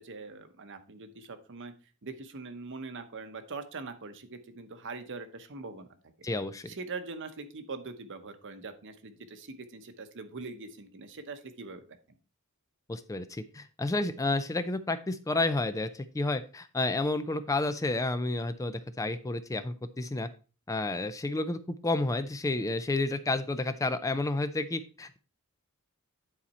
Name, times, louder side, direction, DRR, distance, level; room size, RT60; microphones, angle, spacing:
voice 1, 0.0-1.7 2.0-5.9 6.7-12.2, right 3 dB, 55° right, 9 dB, 0.9 m, -42 dB
voice 2, 6.2-6.7 12.9-20.3 20.7-25.2, left 2 dB, 15° left, 11 dB, 0.4 m, -31 dB
9.8 x 4.2 x 4.2 m, 0.35 s
head